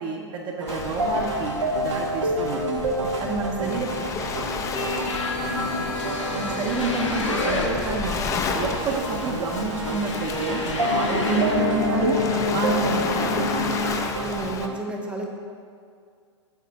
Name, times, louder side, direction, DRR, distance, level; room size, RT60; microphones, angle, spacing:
voice 1, 0.0-2.8 3.2-3.9 6.3-8.2 8.5-12.2 12.5-13.8, right 4 dB, 30° right, 0 dB, 0.8 m, -29 dB
sound 1, 0.6-14.7, right 1 dB, 90° right, 0.9 m, -29 dB
Waves surf, 0.7-14.7, left 5 dB, 20° left, 0.5 m, -33 dB
voice 2, 3.5-4.1 14.2-15.3, right 2 dB, 5° right, 1 dB, 0.9 m, -32 dB
sound 2, 4.7-14.0, left 3 dB, 85° left, 1.3 m, -28 dB
8.1 x 4.2 x 5.8 m, 2.2 s
hypercardioid pair, 115°, 15 cm